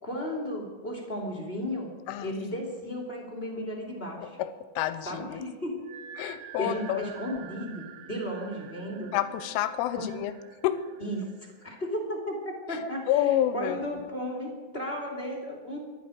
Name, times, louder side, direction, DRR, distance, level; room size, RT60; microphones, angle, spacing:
voice 1, 0.0-1.9 2.2-4.4 5.0-5.8 6.6-9.1 10.0-10.1 11.0-11.2 11.6-12.4 12.7-13.1 13.5-15.8, equal, 15° left, -1 dB, 1.9 m, -34 dB
sound 1, 3.6-11.9, right 9 dB, 80° right, 3.0 m, -49 dB
voice 2, 4.8-5.4 6.2-7.0 9.1-10.3 10.6-10.8 12.7-12.8 13.1-13.8, left 12 dB, 90° left, 12 dB, 3.3 m, -28 dB
23.5 x 11.5 x 5.1 m, 1.3 s
omnidirectional pair, 5.6 m